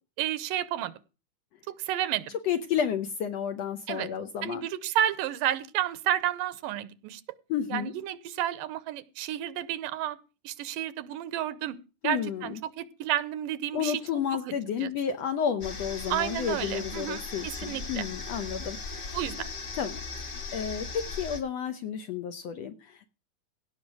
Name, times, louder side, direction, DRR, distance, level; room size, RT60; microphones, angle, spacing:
voice 1, 0.2-0.9 1.8-2.4 3.9-4.1 4.4-7.2 7.7-10.2 10.4-11.8 12.0-14.0 14.4-14.6 14.8-14.9 16.1-18.1 19.1-19.5, right 11 dB, 85° right, 16 dB, 2.4 m, -31 dB
voice 2, 2.4-4.6 7.5-7.9 12.0-12.6 13.7-19.2 19.8-23.1, left 8 dB, 70° left, 8 dB, 1.6 m, -31 dB
sound 1, 15.6-21.4, left 3 dB, 40° left, 1.9 m, -38 dB
17.0 x 5.9 x 6.0 m, 0.32 s
omnidirectional pair, 3.9 m